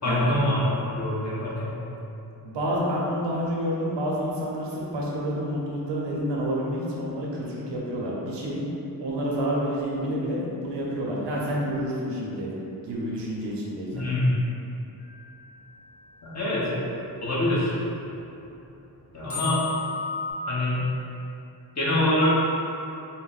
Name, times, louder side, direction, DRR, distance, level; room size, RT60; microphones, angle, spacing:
voice 1, 0.0-0.6 0.9-1.7 13.9-14.3 16.2-16.7 17.2-17.7 19.1-19.6 20.5-20.8 21.8-22.4, left 1 dB, 40° left, -8 dB, 1.1 m, -24 dB
voice 2, 2.4-8.7 9.0-12.5 12.8-14.1, equal, 90° right, -4 dB, 0.8 m, -29 dB
sound 1, 15.0-16.7 17.5-17.6 18.1-18.2 18.4-18.5 19.3-20.3, left 6 dB, 90° left, 1.1 m, -34 dB
4.0 x 2.2 x 4.0 m, 2.9 s
wide cardioid pair, 100°, 41 cm